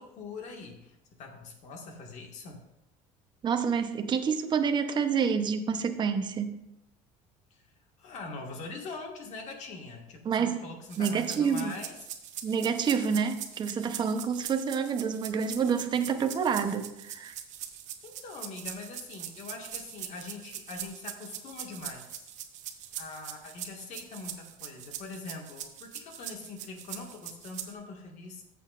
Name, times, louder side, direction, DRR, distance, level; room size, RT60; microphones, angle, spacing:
voice 1, 0.0-2.6 7.5-7.6 8.0-12.0 18.0-22.3 23.0-28.4, left 3 dB, 60° left, 2 dB, 1.8 m, -43 dB
voice 2, 3.4-6.6 10.2-10.6 11.0-11.8 12.4-17.3, right 6 dB, 35° right, 7 dB, 0.8 m, -28 dB
sound 1, 10.9-27.7, right 10 dB, 60° right, 0.9 m, -42 dB
14.5 x 7.0 x 2.5 m, 0.86 s
cardioid pair, 130°, 14 cm